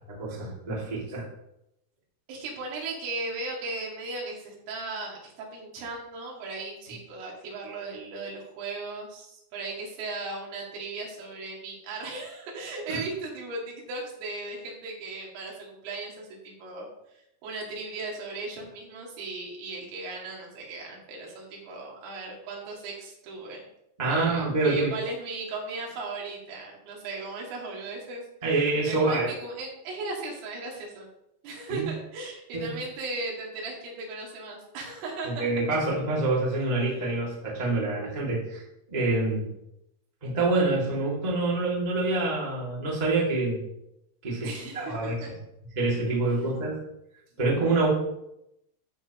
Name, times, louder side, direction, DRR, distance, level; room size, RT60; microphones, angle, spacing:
voice 1, 0.1-1.3 12.9-13.0 24.0-24.9 28.4-29.3 31.7-31.8 32.5-32.7 35.2-38.6 38.9-39.5 40.2-43.6 44.2-44.5 44.7-45.2 45.7-46.8 47.4-47.9, right 2 dB, 25° right, -5 dB, 0.9 m, -26 dB
voice 2, 2.3-16.9 17.4-23.6 24.1-28.2 28.5-31.1 31.4-35.5 36.8-36.9 44.4-45.3, right 3 dB, 80° right, -2 dB, 4.8 m, -37 dB
12.5 x 7.3 x 3.1 m, 0.83 s
omnidirectional pair, 5.8 m